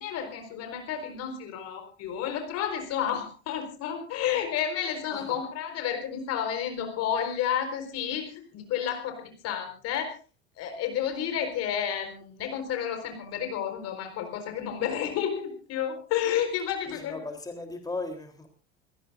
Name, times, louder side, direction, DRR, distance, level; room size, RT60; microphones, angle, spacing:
voice 1, 0.0-10.1 10.6-17.3, left 9 dB, 45° left, 5 dB, 4.6 m, -31 dB
voice 2, 16.9-18.5, left 3 dB, 10° left, 4 dB, 3.7 m, -37 dB
29.0 x 16.5 x 2.6 m, 0.34 s
figure-of-eight pair, 70°, 34 cm